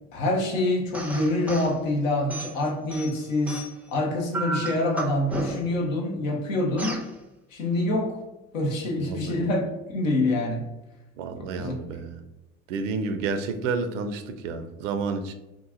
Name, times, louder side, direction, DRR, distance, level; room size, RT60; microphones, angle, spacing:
voice 1, 0.1-3.6 3.9-7.0 7.5-8.1 8.5-9.6 9.9-10.6 11.4-11.7, left 1 dB, 75° left, 1 dB, 0.9 m, -26 dB
sound 1, 0.9-1.7 2.3-3.9 4.3-5.8 6.8-7.1, right 1 dB, 5° right, 0.5 m, -33 dB
voice 2, 9.0-9.4 11.2-12.2 12.7-15.3, right 4 dB, 70° right, 8 dB, 0.5 m, -30 dB
3.0 x 2.4 x 3.6 m, 0.98 s
hypercardioid pair, 65°, 39 cm